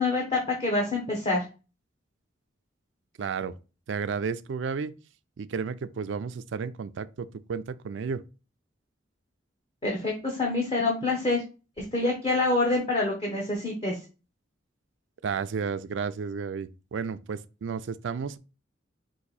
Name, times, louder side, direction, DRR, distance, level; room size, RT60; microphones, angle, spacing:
voice 1, 0.0-1.4 9.8-11.4 11.9-14.0, left 2 dB, 30° left, 0.9 m, -26 dB
voice 2, 3.2-3.5 3.9-4.9 5.4-8.2 15.2-18.4, right 5 dB, 70° right, 0.4 m, -32 dB
4.8 x 2.6 x 4.0 m
head